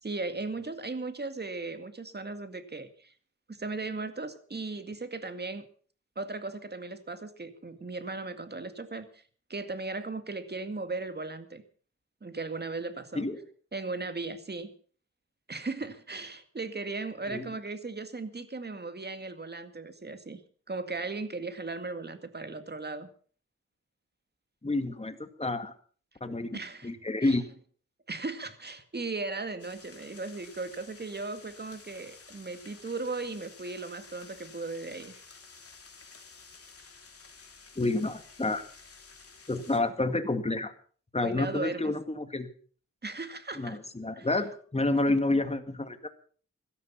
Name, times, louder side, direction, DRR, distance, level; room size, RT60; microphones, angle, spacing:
voice 1, 0.0-3.1 3.5-5.7 6.2-9.2 9.5-11.6 12.2-13.2 13.7-14.7 15.5-20.4 20.7-23.1 26.5-26.9 27.2-27.3 28.1-35.1 41.2-41.9 43.0-43.8 44.2-44.3, right 3 dB, 35° right, 10 dB, 2.1 m, -37 dB
voice 2, 24.6-25.7 26.2-27.4 37.8-38.6 39.5-40.7 41.1-42.5 43.5-46.1, left 2 dB, 20° left, 9 dB, 2.0 m, -29 dB
sound 1, 29.6-39.8, left 4 dB, 50° left, 3.3 m, -52 dB
16.5 x 13.0 x 5.7 m, 0.44 s
cardioid pair, 70°, 30 cm